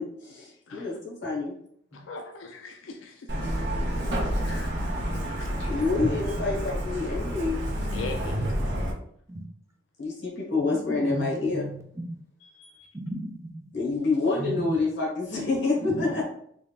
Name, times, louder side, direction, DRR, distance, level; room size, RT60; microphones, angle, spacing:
voice 1, 0.0-1.6 5.6-7.6 10.0-11.7 13.7-16.2, left 3 dB, 65° left, -2 dB, 1.2 m, -27 dB
voice 2, 2.1-3.1 4.4-4.7 5.6-5.7 7.9-8.4, left 3 dB, 85° left, 4 dB, 0.4 m, -39 dB
Truck, 3.3-8.9, equal, 60° right, 1.1 m, -29 dB
voice 3, 8.3-8.8 9.3-9.4 10.9-12.0 12.9-13.7 14.4-14.7 15.8-16.1, right 1 dB, 15° right, 2 dB, 0.5 m, -34 dB
4.0 x 3.3 x 2.4 m, 0.68 s
head